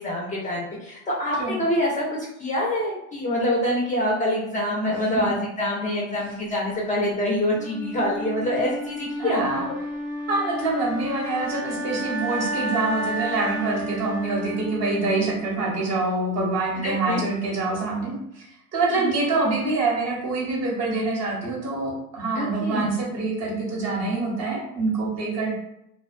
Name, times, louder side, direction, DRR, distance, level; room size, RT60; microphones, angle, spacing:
voice 1, 0.0-2.0 2.4-9.4 16.8-17.3 18.9-19.1 22.3-22.9, left 1 dB, 15° left, -5 dB, 0.6 m, -25 dB
Wind instrument woodwind instrument, 7.6-15.6, equal, 75° right, 0.9 m, -32 dB
voice 2, 9.2-9.7 10.3-18.4 18.7-25.6, right 3 dB, 35° right, -3 dB, 1.0 m, -25 dB
2.3 x 2.2 x 2.4 m, 0.81 s
hypercardioid pair, 90°, 43 cm